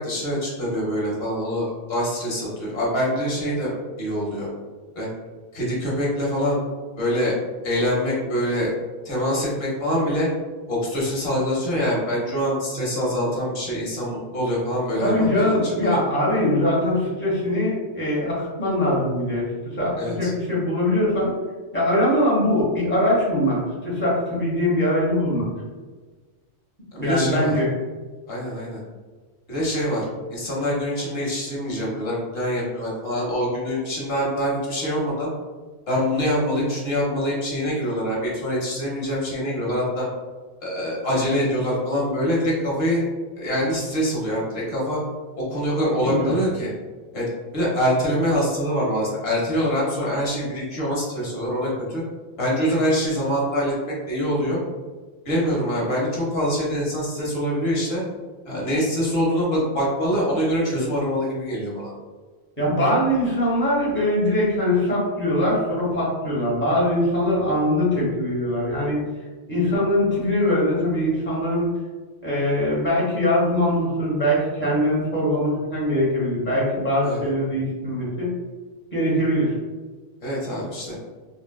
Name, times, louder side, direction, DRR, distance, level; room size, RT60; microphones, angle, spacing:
voice 1, 0.0-4.5 5.0-5.1 5.5-6.6 7.0-7.4 7.6-8.7 9.0-10.3 10.7-16.0 20.0-20.3 26.9-27.5 28.3-28.8 29.5-35.3 35.9-40.1 40.6-43.0 43.4-45.0 45.5-46.7 47.1-47.2 47.5-52.0 52.4-54.6 55.2-58.0 58.4-61.9 77.0-77.2 80.2-81.0, equal, 60° left, -4 dB, 1.1 m, -24 dB
voice 2, 15.0-19.5 19.7-21.3 21.7-25.4 26.9-27.7 46.1-46.3 62.6-69.0 69.4-71.7 72.2-78.3 78.9-79.5, left 1 dB, 10° left, -7 dB, 0.9 m, -22 dB
3.7 x 2.2 x 2.2 m, 1.4 s
omnidirectional pair, 1.2 m